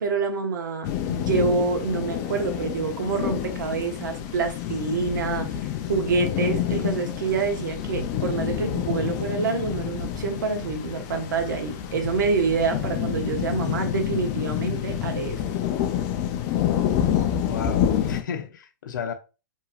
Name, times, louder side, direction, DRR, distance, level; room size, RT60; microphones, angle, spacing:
voice 1, 0.0-5.5 5.9-15.4, right 4 dB, 80° right, 0.8 m, -27 dB
sound 1, 0.8-18.2, left 10 dB, 35° left, 0.4 m, -28 dB
voice 2, 17.4-19.1, left 7 dB, 80° left, 0.7 m, -33 dB
2.9 x 2.7 x 2.4 m
hypercardioid pair, 150°, 10 cm